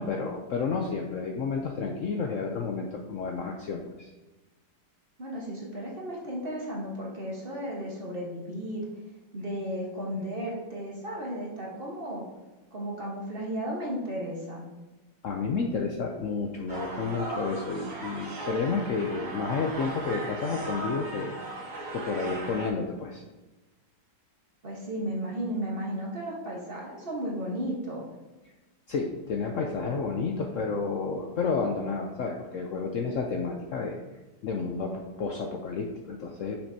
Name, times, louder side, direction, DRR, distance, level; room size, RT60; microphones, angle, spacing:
voice 1, 0.0-4.1 15.2-21.3 21.9-23.2 28.9-33.9 34.4-36.6, left 4 dB, 65° left, 2 dB, 0.8 m, -31 dB
voice 2, 5.2-8.9 9.3-12.3 12.7-14.7 24.6-28.0, equal, 35° right, -3 dB, 1.4 m, -34 dB
sound 1, 16.7-22.7, right 2 dB, 55° right, 1.6 m, -37 dB
6.7 x 5.9 x 2.8 m, 1.1 s
omnidirectional pair, 1.8 m